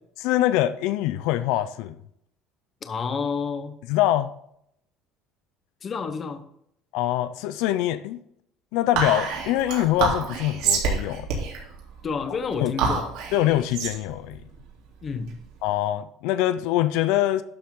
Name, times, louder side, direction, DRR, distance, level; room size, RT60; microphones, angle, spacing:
voice 1, 0.2-1.9 3.9-4.3 6.9-8.2 8.7-11.4 12.6-12.7 13.3-14.4 15.6-17.4, left 13 dB, 75° left, 0.6 m, -24 dB
voice 2, 2.8-3.8 5.8-6.4 12.0-13.1 15.0-15.4, left 5 dB, 25° left, 0.9 m, -29 dB
Whispering, 8.9-15.6, right 5 dB, 75° right, 3.3 m, -28 dB
11.5 x 7.0 x 3.8 m
cardioid pair, 180°, 0 cm